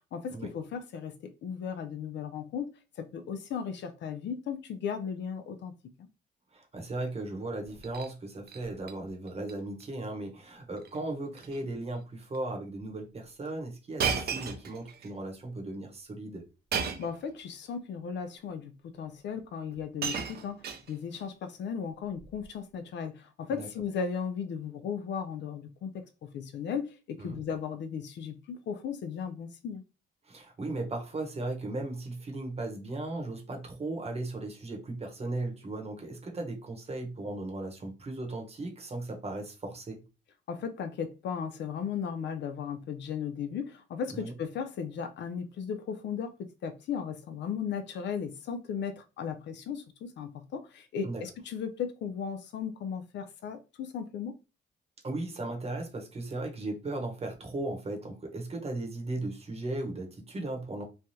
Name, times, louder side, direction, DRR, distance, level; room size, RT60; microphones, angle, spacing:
voice 1, 0.1-2.7 3.0-5.7 6.0-6.1 17.0-20.6 20.9-26.0 26.3-29.8 40.5-46.3 46.6-54.3, left 7 dB, 65° left, 0.5 m, -36 dB
voice 2, 6.5-16.4 23.5-23.7 27.2-27.4 30.3-40.0 44.1-44.3 51.0-51.2 55.0-60.8, right 2 dB, 30° right, 1.0 m, -37 dB
Shatter, 7.6-8.1 8.5-8.9 9.3-9.5 9.8-9.9 10.8-11.0 11.3-11.6 12.3-12.4 14.0-15.1 16.7-17.2 18.2-18.3 19.3-19.4 19.7-21.2 22.2-22.4, right 6 dB, 55° right, 0.6 m, -34 dB
3.2 x 2.3 x 2.7 m
cardioid pair, 90°, 20 cm